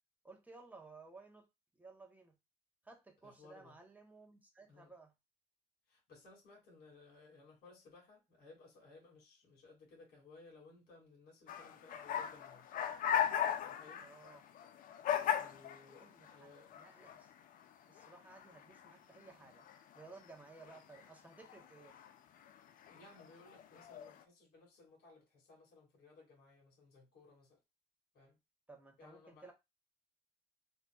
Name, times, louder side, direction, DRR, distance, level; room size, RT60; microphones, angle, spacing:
voice 1, 0.2-1.4 1.8-2.3 2.8-5.1 14.0-14.4 16.0-17.3 17.8-19.6 19.9-21.9 28.7-29.5, right 3 dB, 10° right, 0.9 m, -57 dB
voice 2, 3.2-3.8 4.7-4.9 5.9-12.7 13.6-14.1 15.3-16.7 22.9-27.6 28.1-28.4 29.0-29.5, left 3 dB, 70° left, 2.2 m, -60 dB
sound 1, 11.5-16.4 16.7-17.6 18.0-18.9 19.7-20.0 20.6-21.1 21.5-22.1 22.5-22.6 22.8-24.1, left 9 dB, 55° left, 0.4 m, -37 dB
3.8 x 2.5 x 2.3 m
cardioid pair, 110°, 17 cm